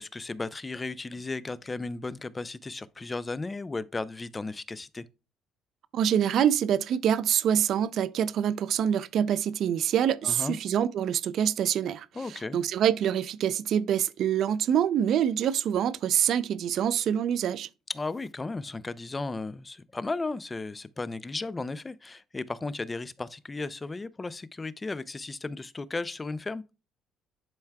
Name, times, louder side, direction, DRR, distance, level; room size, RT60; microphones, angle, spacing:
voice 1, 0.0-5.0 10.2-10.6 12.1-12.6 17.9-26.6, left 3 dB, 15° left, 0.3 m, -35 dB
voice 2, 5.9-17.7, right 9 dB, 55° right, 0.4 m, -26 dB
10.5 x 4.5 x 2.2 m
cardioid pair, 145°, 0 cm